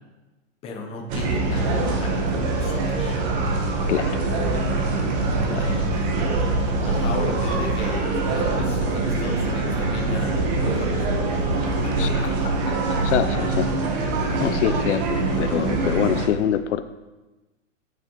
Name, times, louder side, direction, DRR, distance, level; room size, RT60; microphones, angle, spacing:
voice 1, 0.6-3.2 5.6-5.9 6.8-11.5 11.8-13.0 14.3-14.4, left 3 dB, 15° left, 1 dB, 0.7 m, -35 dB
sound 1, 1.1-16.3, right 2 dB, 35° right, 1.1 m, -24 dB
voice 2, 3.8-4.2 5.5-5.7 12.0-12.2 13.0-13.7 14.4-16.8, left 10 dB, 65° left, 10 dB, 0.5 m, -25 dB
sound 2, 4.1-14.1, right 17 dB, 70° right, 0.8 m, -37 dB
9.0 x 6.9 x 3.0 m, 1.1 s
hypercardioid pair, 150°, 39 cm